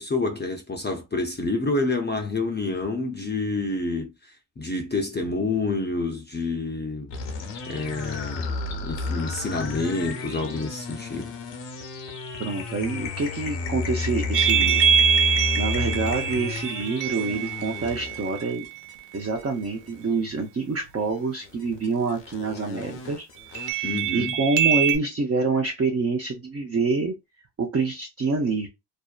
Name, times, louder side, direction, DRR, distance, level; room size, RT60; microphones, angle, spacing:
voice 1, 0.0-4.1 4.6-7.1 7.7-8.5 8.8-11.3 23.8-24.4, left 3 dB, 25° left, 0.6 m, -28 dB
sound 1, 7.1-20.2 21.1-23.7, left 4 dB, 85° left, 0.8 m, -32 dB
voice 2, 12.4-18.7 19.1-23.3 23.5-27.1 27.6-28.7, right 4 dB, 35° right, 0.6 m, -27 dB
sound 2, 14.3-18.9 23.5-25.0, right 8 dB, 75° right, 0.5 m, -24 dB
2.6 x 2.1 x 2.3 m
cardioid pair, 65°, 43 cm